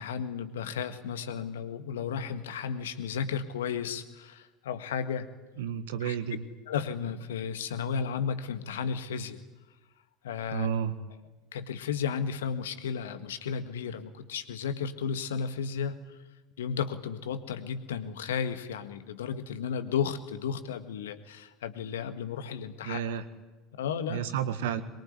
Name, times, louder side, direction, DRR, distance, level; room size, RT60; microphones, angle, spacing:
voice 1, 0.0-5.3 6.0-6.2 6.7-9.4 10.2-10.7 11.5-16.2 16.6-23.0 23.8-24.2, left 7 dB, 70° left, 10 dB, 1.7 m, -33 dB
voice 2, 5.6-6.4 10.5-11.0 22.8-23.2 24.1-24.8, right 8 dB, 65° right, 12 dB, 1.6 m, -31 dB
23.0 x 23.0 x 9.6 m, 1.1 s
figure-of-eight pair, 70°, 0 cm